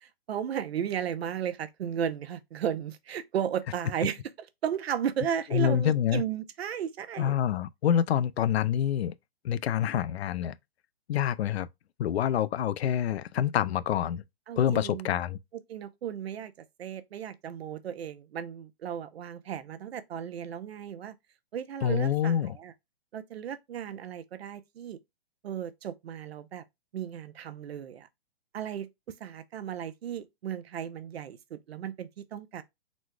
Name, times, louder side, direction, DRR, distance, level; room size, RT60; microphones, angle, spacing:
voice 1, 0.0-7.4 14.5-15.2 15.7-16.5 16.8-21.1 21.5-22.7 23.1-25.0 25.4-26.6 26.9-28.1 28.5-32.6, right 9 dB, 75° right, 0.7 m, -35 dB
voice 2, 5.5-6.2 7.2-9.1 9.4-10.5 11.1-11.7 12.0-14.2 14.6-15.4 21.8-22.6, left 9 dB, 75° left, 0.5 m, -26 dB
4.1 x 2.2 x 4.6 m
hypercardioid pair, 170°, 32 cm